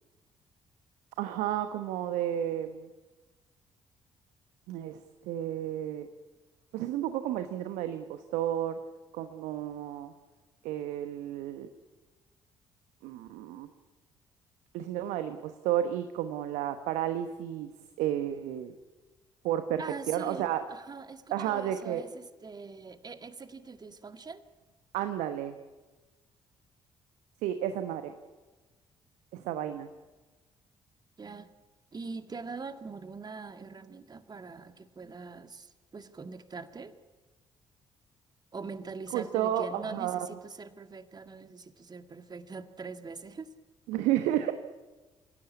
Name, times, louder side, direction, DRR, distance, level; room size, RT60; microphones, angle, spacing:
voice 1, 1.2-2.9 4.7-6.1 6.7-8.8 9.1-10.1 10.6-11.7 13.0-13.7 14.7-17.7 18.0-18.7 19.4-20.6 21.3-22.0 24.9-25.6 27.4-28.1 29.3-29.9 39.1-40.3 43.9-44.5, right 11 dB, 65° right, 9 dB, 1.1 m, -32 dB
voice 2, 19.8-24.4 31.2-31.5 31.9-37.0 38.5-43.5, right 4 dB, 30° right, 9 dB, 1.9 m, -43 dB
27.5 x 16.5 x 8.6 m, 1.2 s
figure-of-eight pair, 45°, 13 cm